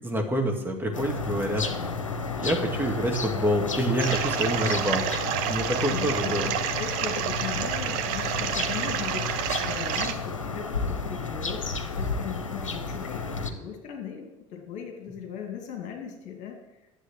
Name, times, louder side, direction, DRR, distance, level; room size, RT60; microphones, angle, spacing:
voice 1, 0.0-1.7 2.4-5.2 5.4-6.5, equal, 15° right, 2 dB, 2.2 m, -27 dB
sound 1, 0.9-13.5, left 4 dB, 80° left, 0.9 m, -32 dB
sound 2, 4.0-10.1, right 10 dB, 55° right, 0.9 m, -29 dB
voice 2, 5.9-6.3 6.7-16.6, left 8 dB, 50° left, 2 dB, 2.4 m, -38 dB
10.0 x 7.8 x 7.8 m, 0.98 s
figure-of-eight pair, 65°, 16 cm